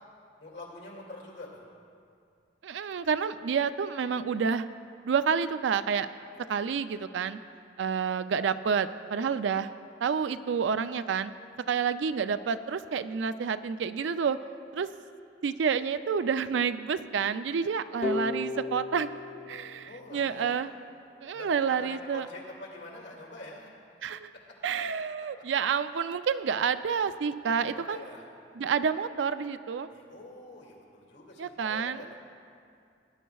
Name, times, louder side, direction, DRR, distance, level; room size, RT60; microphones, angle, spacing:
voice 1, 0.4-1.6 19.8-20.6 21.3-23.7 23.9-24.1 24.3-24.6 27.5-28.3 29.9-32.2, left 2 dB, 80° left, -2 dB, 2.2 m, -45 dB
voice 2, 2.6-4.6 5.0-6.1 6.5-7.4 7.8-9.7 10.0-11.3 11.7-14.4 14.7-14.9 15.4-19.1 19.5-20.7 21.2-22.3 24.0-24.3 24.6-28.0 28.6-29.9 31.4-32.0, right 6 dB, 85° right, 12 dB, 0.4 m, -29 dB
sound 1, 18.0-20.8, left 2 dB, 35° left, 0.7 m, -36 dB
18.0 x 10.0 x 2.3 m, 2.4 s
head